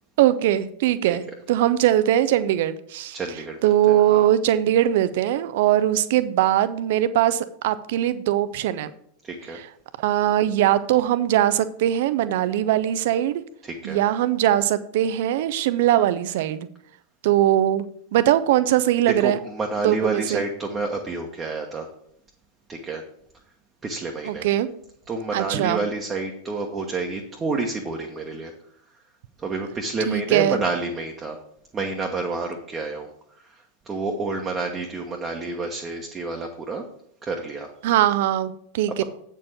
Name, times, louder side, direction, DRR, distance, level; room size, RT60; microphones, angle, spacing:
voice 1, 0.2-3.2 3.6-8.9 9.5-9.7 10.0-13.4 13.8-16.7 17.2-19.4 19.8-20.4 24.2-24.7 25.3-25.8 30.1-30.6 37.8-39.0, right 12 dB, 50° right, 14 dB, 0.6 m, -21 dB
voice 2, 3.1-4.3 9.2-9.6 13.6-14.0 19.2-21.9 22.7-23.0 23.8-24.5 25.1-28.5 29.4-31.4 31.7-33.1 33.5-36.8 37.2-37.7 39.0-39.1, right 3 dB, 20° right, 1 dB, 1.1 m, -29 dB
8.5 x 4.6 x 7.0 m, 0.68 s
figure-of-eight pair, 90°, 0 cm